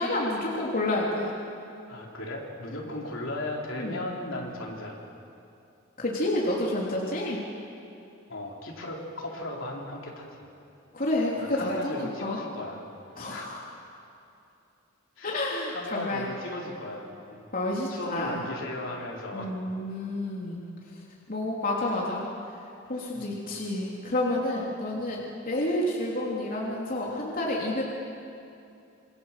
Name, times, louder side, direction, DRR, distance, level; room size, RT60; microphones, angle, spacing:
voice 1, 0.0-1.3 3.8-4.0 6.0-7.4 10.9-12.4 13.2-13.7 15.2-16.3 17.5-18.4 19.3-22.2 22.6-27.8, left 1 dB, 45° left, -3 dB, 3.3 m, -30 dB
voice 2, 1.9-5.0 8.3-10.5 11.4-12.9 13.3-13.6 15.2-17.5 17.9-19.5 23.1-23.4, left 1 dB, 70° left, -2 dB, 4.3 m, -36 dB
27.0 x 24.0 x 7.6 m, 2.6 s
head